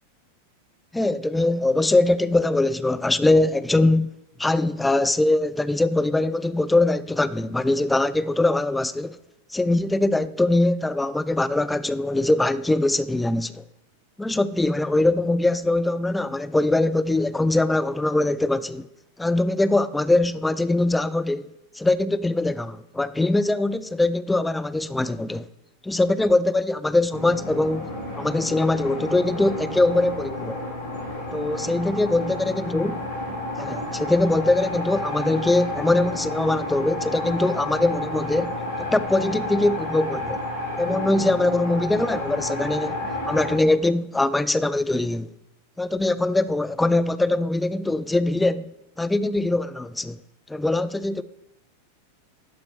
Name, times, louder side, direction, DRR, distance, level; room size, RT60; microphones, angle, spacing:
voice 1, 0.9-4.1 4.4-9.2 9.5-13.6 14.2-18.9 19.2-21.5 21.8-25.5 25.8-27.9 28.2-30.6 31.3-32.9 33.6-40.4 40.8-43.0 43.3-45.3 45.8-48.7 49.0-50.2 50.5-51.2, left 2 dB, 5° left, 0.3 m, -22 dB
sound 1, 27.1-43.6, left 1 dB, 70° left, 2.5 m, -31 dB
11.5 x 4.3 x 3.9 m
figure-of-eight pair, 90°, 0 cm